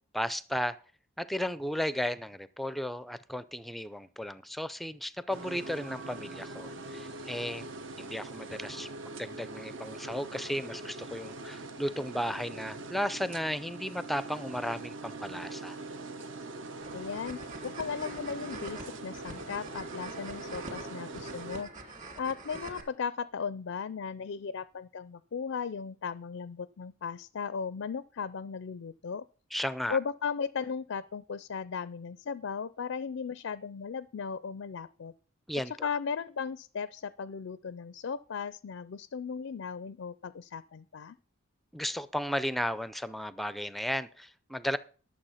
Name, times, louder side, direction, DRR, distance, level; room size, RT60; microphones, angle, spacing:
voice 1, 0.1-0.8 1.2-7.7 8.0-15.8 29.5-30.0 35.5-35.9 41.7-44.8, equal, ahead, 15 dB, 0.4 m, -34 dB
sound 1, 5.3-21.6, right 2 dB, 60° right, 0.8 m, -42 dB
sound 2, 16.8-22.8, right 3 dB, 35° right, 2.5 m, -45 dB
voice 2, 16.9-29.3 29.9-35.1 35.7-41.2, left 6 dB, 65° left, 16 dB, 0.4 m, -36 dB
12.0 x 7.2 x 5.6 m, 0.40 s
head